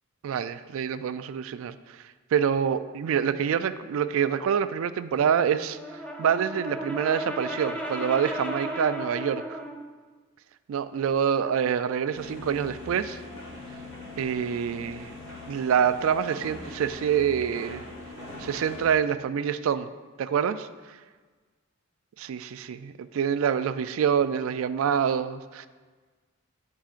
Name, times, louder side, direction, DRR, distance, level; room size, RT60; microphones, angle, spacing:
voice 1, 0.2-5.8 6.2-9.6 10.7-13.2 14.2-15.1 15.5-17.9 18.4-19.9 20.2-21.0 22.2-25.7, right 7 dB, 75° right, 13 dB, 0.3 m, -26 dB
Brass instrument, 5.7-9.9, equal, 5° left, 0.5 m, -35 dB
sound 1, 12.1-19.0, left 2 dB, 60° left, 1.1 m, -42 dB
10.0 x 4.7 x 2.4 m, 1.4 s
head